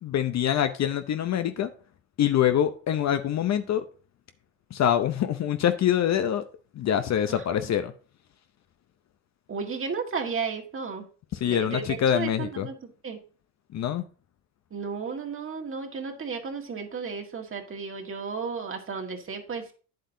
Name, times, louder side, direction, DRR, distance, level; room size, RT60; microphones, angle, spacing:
voice 1, 0.0-1.7 2.2-3.8 4.7-6.4 6.7-7.9 11.3-12.7 13.7-14.0, left 10 dB, 40° left, 0.7 m, -25 dB
voice 2, 7.3-7.7 9.5-11.1 11.4-13.2 14.7-19.7, right 5 dB, 30° right, 1.7 m, -34 dB
9.2 x 7.7 x 2.7 m
supercardioid pair, 90°, 42 cm